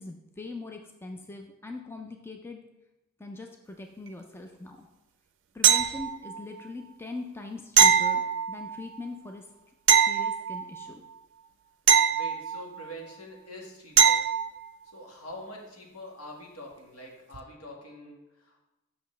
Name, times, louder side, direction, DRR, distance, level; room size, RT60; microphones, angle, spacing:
voice 1, 0.0-2.6 3.2-4.9 5.5-8.2 8.5-9.5 10.0-11.0, left 2 dB, 10° left, 3 dB, 0.4 m, -41 dB
sound 1, 5.6-6.4 7.8-8.8 9.9-10.9 11.9-12.9 14.0-14.6 17.3-17.4, right 8 dB, 55° right, 0.5 m, -22 dB
voice 2, 12.1-14.2 14.9-18.6, equal, 75° left, -1 dB, 1.5 m, -44 dB
7.7 x 6.0 x 3.1 m, 0.99 s
head